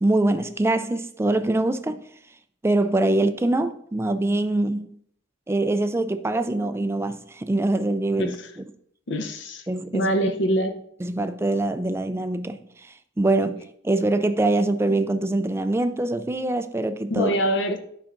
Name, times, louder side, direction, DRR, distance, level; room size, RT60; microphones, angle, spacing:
voice 1, 0.0-2.0 2.6-4.9 5.5-8.3 9.7-10.1 11.0-12.7 13.2-17.3, right 2 dB, 15° right, 0.3 m, -23 dB
voice 2, 8.2-8.5 9.1-9.7 9.9-10.8 17.1-17.8, equal, 65° left, 0.8 m, -24 dB
9.7 x 5.6 x 2.6 m
head